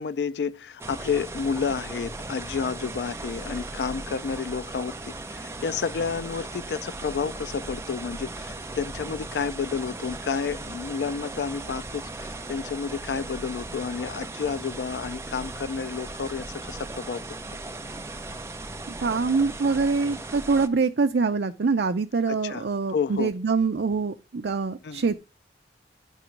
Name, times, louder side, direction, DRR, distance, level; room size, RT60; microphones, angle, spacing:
voice 1, 0.0-17.2 22.3-23.3 24.8-25.1, left 5 dB, 70° left, 0.4 m, -30 dB
sound 1, 0.8-20.7, right 2 dB, 15° right, 0.5 m, -37 dB
voice 2, 19.0-25.2, right 4 dB, 70° right, 0.5 m, -24 dB
9.0 x 3.0 x 5.8 m
head